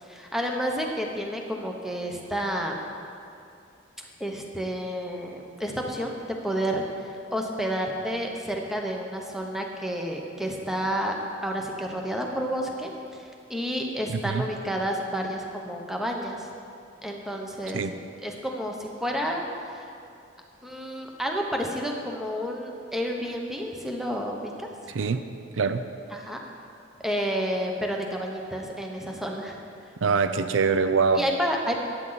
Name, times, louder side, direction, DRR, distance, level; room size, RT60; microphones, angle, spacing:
voice 1, 0.0-2.8 4.2-11.1 11.4-16.5 17.0-17.9 18.2-19.9 20.6-24.7 26.1-26.4 27.0-29.6 31.1-31.8, equal, ahead, 1 dB, 1.0 m, -30 dB
voice 2, 30.0-31.2, right 5 dB, 75° right, 10 dB, 0.5 m, -23 dB
14.0 x 9.9 x 4.1 m, 2.5 s
head